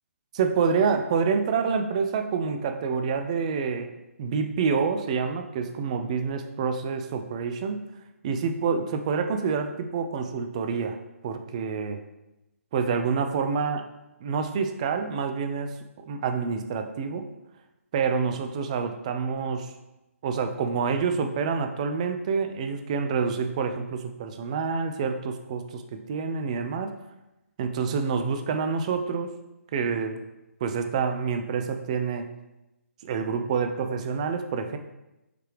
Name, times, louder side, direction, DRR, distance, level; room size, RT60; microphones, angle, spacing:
voice 1, 0.3-3.9 4.2-7.8 8.2-11.0 11.2-12.0 12.7-13.8 14.2-15.8 16.0-17.3 17.9-19.7 20.2-26.9 27.6-29.3 29.7-30.2 30.6-32.3 33.0-34.8, right 5 dB, 25° right, 7 dB, 0.3 m, -27 dB
4.9 x 3.3 x 3.2 m, 0.97 s
figure-of-eight pair, 140°, 8 cm